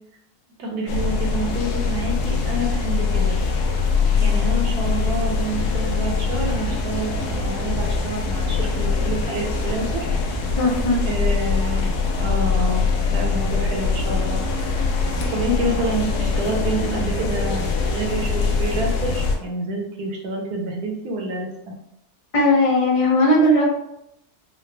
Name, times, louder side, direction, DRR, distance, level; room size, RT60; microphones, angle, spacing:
voice 1, 0.6-3.4 4.2-10.0 11.0-11.9 12.2-14.4 15.3-21.5, right 2 dB, 75° right, 0 dB, 1.3 m, -28 dB
sound 1, 0.9-19.4, left 4 dB, 80° left, 1.2 m, -23 dB
voice 2, 10.6-11.0 22.3-23.7, left 1 dB, 60° left, -3 dB, 0.3 m, -17 dB
3.8 x 2.1 x 3.2 m, 0.81 s
omnidirectional pair, 1.7 m